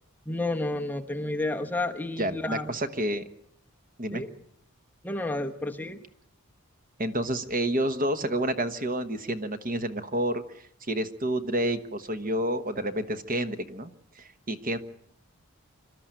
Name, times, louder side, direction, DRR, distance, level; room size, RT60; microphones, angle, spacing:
voice 1, 0.3-2.7 4.1-4.3 5.0-6.0, left 2 dB, 10° left, 3 dB, 1.1 m, -31 dB
voice 2, 2.2-3.2 4.0-4.2 7.0-14.8, right 1 dB, 40° right, 9 dB, 1.1 m, -29 dB
26.5 x 12.5 x 8.9 m, 0.73 s
head